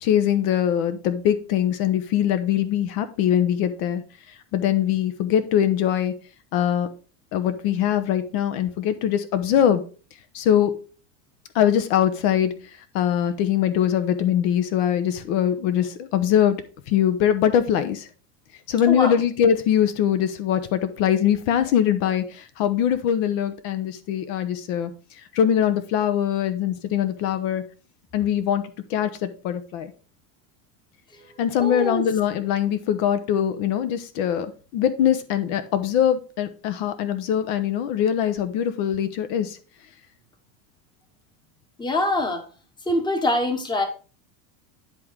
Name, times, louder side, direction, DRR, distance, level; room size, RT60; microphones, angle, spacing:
voice 1, 0.0-4.0 4.5-6.1 6.5-6.9 7.3-9.8 10.3-10.7 11.5-12.5 12.9-16.6 16.9-18.0 18.7-24.9 25.3-27.6 28.1-28.6 28.9-29.9 31.4-34.5 34.7-39.6, left 9 dB, 60° left, 10 dB, 1.0 m, -22 dB
voice 2, 31.6-32.0 41.8-42.4 42.9-43.8, left 1 dB, 10° left, 5 dB, 1.1 m, -24 dB
10.5 x 3.8 x 4.6 m, 0.37 s
supercardioid pair, 150°, 47 cm